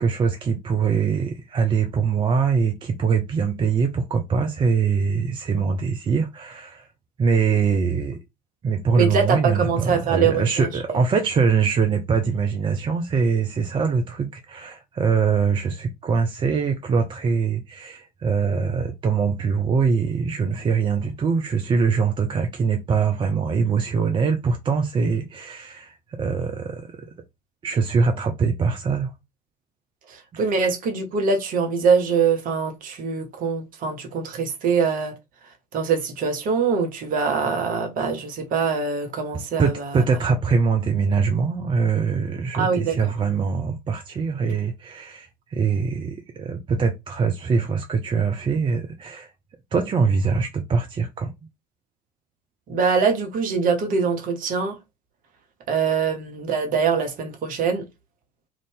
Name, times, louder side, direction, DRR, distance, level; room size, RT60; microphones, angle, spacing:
voice 1, 0.0-6.9 7.2-8.2 8.6-27.0 27.6-29.1 39.6-49.3 49.7-51.3, right 5 dB, 25° right, 0.4 m, -23 dB
voice 2, 9.0-11.0 30.1-35.1 35.4-40.0 42.5-43.0 52.7-54.8 55.7-57.9, right 5 dB, 40° right, 0.9 m, -23 dB
2.6 x 2.4 x 3.5 m
figure-of-eight pair, 65°, 21 cm